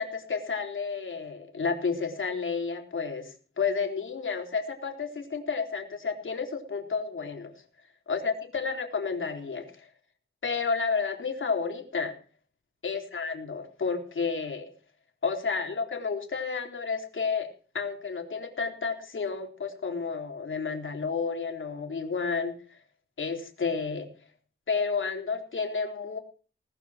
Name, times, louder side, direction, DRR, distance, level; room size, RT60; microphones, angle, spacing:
voice 1, 0.0-7.5 8.1-9.9 10.4-12.1 12.8-14.7 15.2-17.5 17.7-22.8 23.2-24.1 24.7-26.2, left 5 dB, 75° left, 4 dB, 4.0 m, -31 dB
19.0 x 14.0 x 4.5 m, 0.39 s
wide cardioid pair, 80°, 21 cm